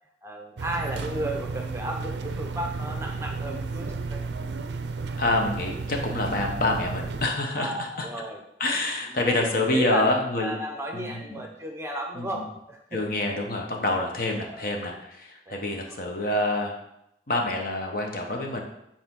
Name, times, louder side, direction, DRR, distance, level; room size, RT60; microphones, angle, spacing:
voice 1, 0.2-4.2 7.5-8.4 9.0-13.0 14.3-14.6 15.5-15.6, right 1 dB, 15° right, 2 dB, 0.8 m, -34 dB
sound 1, 0.6-7.3, right 4 dB, 65° right, 0.4 m, -33 dB
voice 2, 5.2-8.1 8.6-10.6 10.9-11.4 12.2-12.4 12.9-16.8 17.3-18.6, left 2 dB, 50° left, 2 dB, 1.0 m, -27 dB
8.6 x 4.3 x 3.7 m, 0.82 s
head